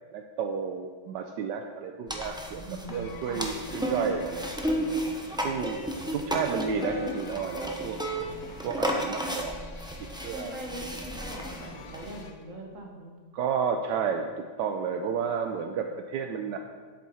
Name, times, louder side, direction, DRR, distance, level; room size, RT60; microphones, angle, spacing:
voice 1, 0.1-2.6 2.9-4.7 5.4-5.8 6.1-8.0 8.6-9.6 10.0-10.6 13.3-16.6, right 6 dB, 80° right, 5 dB, 1.3 m, -31 dB
sound 1, 2.1-12.2, right 1 dB, 5° right, 0.4 m, -33 dB
voice 2, 2.6-3.5 10.3-13.1, right 1 dB, 50° right, 0 dB, 1.9 m, -41 dB
sound 2, 2.9-12.3, left 6 dB, 85° left, 1.5 m, -49 dB
10.5 x 8.3 x 4.2 m, 1.5 s
omnidirectional pair, 1.9 m